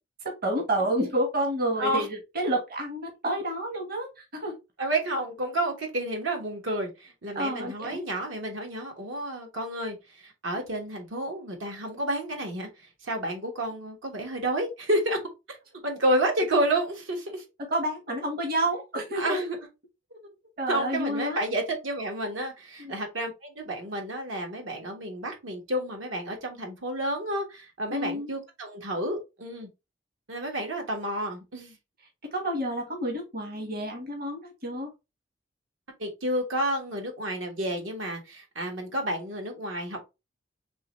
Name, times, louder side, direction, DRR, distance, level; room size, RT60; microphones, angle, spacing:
voice 1, 0.2-4.6 7.3-8.1 17.7-19.4 20.6-21.4 22.8-22.9 27.9-28.3 32.3-34.9, right 1 dB, 50° right, 1.1 m, -29 dB
voice 2, 4.8-15.2 15.5-15.6 15.8-17.4 19.1-19.6 20.1-20.2 20.7-29.7 30.3-31.7 36.0-40.0, right 1 dB, 80° right, 1.3 m, -30 dB
3.8 x 3.2 x 3.0 m
head